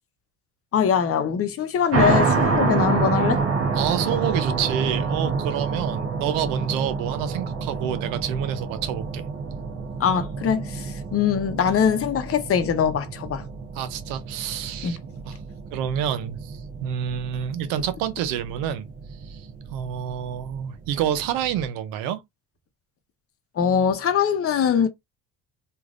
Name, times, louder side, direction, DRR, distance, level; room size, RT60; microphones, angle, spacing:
voice 1, 0.7-3.4 10.0-13.4 14.8-14.9 23.6-24.9, left 8 dB, 45° left, 0.8 m, -22 dB
sound 1, 1.9-21.6, right 4 dB, 45° right, 0.9 m, -28 dB
voice 2, 3.7-9.2 13.7-15.0 15.2-15.4 15.7-18.9 19.2-22.2, right 10 dB, 85° right, 0.7 m, -28 dB
3.2 x 2.5 x 2.4 m
supercardioid pair, 90°, 33 cm